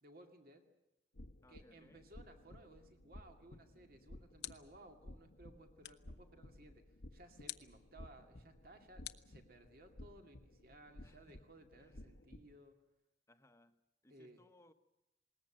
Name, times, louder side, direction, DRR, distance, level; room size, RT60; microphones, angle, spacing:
voice 1, 0.0-0.7 1.5-12.8 14.1-14.4, right 1 dB, 55° right, 5 dB, 2.3 m, -60 dB
sound 1, 1.1-12.6, left 1 dB, 90° left, 1.2 m, -57 dB
voice 2, 1.4-2.1 11.0-12.2 13.3-14.7, left 1 dB, 15° left, 8 dB, 1.1 m, -67 dB
sound 2, 3.7-4.9 5.8-6.2 7.5-7.8 9.0-9.9, left 14 dB, 75° left, 0.8 m, -50 dB
20.5 x 19.5 x 8.9 m, 0.90 s
head